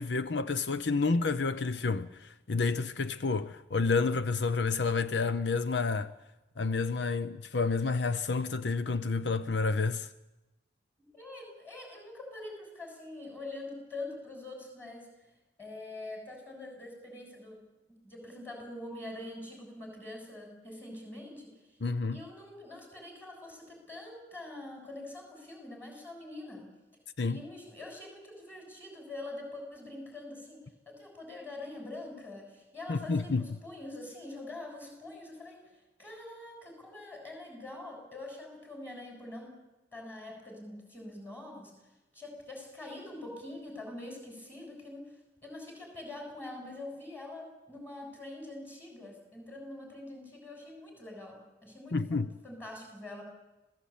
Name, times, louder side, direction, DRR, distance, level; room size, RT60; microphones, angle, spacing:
voice 1, 0.0-6.1 6.6-10.1 21.8-22.2 27.2-27.4 32.9-33.5 51.9-52.3, left 4 dB, 80° left, 0.8 m, -29 dB
voice 2, 11.1-15.1 15.6-17.6 18.0-21.5 22.1-26.7 27.3-35.7 36.0-39.6 39.9-41.8 42.1-53.2, left 2 dB, 10° left, 7.2 m, -44 dB
26.0 x 17.5 x 8.7 m
head